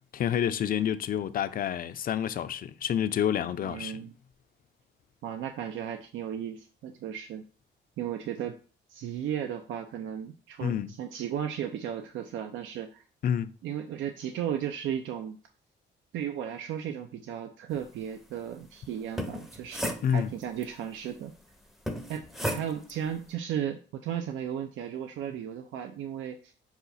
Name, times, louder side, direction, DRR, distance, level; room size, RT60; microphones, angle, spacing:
voice 1, 0.1-4.0 10.6-10.9 13.2-13.5 20.0-20.3, left 9 dB, 45° left, 0.4 m, -28 dB
voice 2, 3.6-4.1 5.2-7.4 8.0-8.6 8.9-13.0 13.6-15.4 16.1-21.3 22.1-26.5, right 9 dB, 75° right, 0.5 m, -35 dB
sound 1, 19.0-20.6 21.9-23.0, equal, ahead, 0.6 m, -34 dB
5.6 x 2.4 x 4.0 m
cardioid pair, 90°, 20 cm